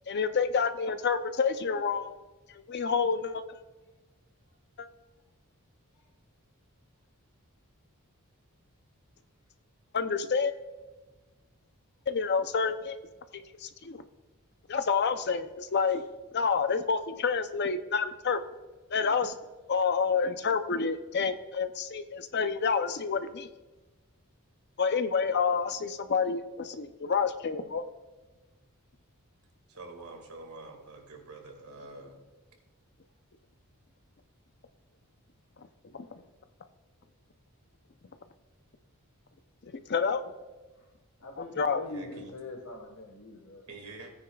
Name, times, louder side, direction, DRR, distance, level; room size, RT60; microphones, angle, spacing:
voice 1, 0.1-2.2 2.7-3.4 4.8-4.9 9.9-10.5 12.1-13.0 13.6-14.0 14.7-16.0 16.3-18.4 18.9-19.3 19.7-23.5 24.8-27.8 35.9-36.1 39.7-40.2 41.4-41.8, left 5 dB, 50° left, 10 dB, 0.6 m, -28 dB
voice 2, 29.7-32.2 41.8-42.3 43.7-44.1, right 2 dB, 80° right, 3 dB, 2.0 m, -46 dB
voice 3, 41.2-43.7, left 2 dB, 70° left, 0 dB, 1.4 m, -43 dB
16.5 x 9.5 x 2.3 m, 1.2 s
head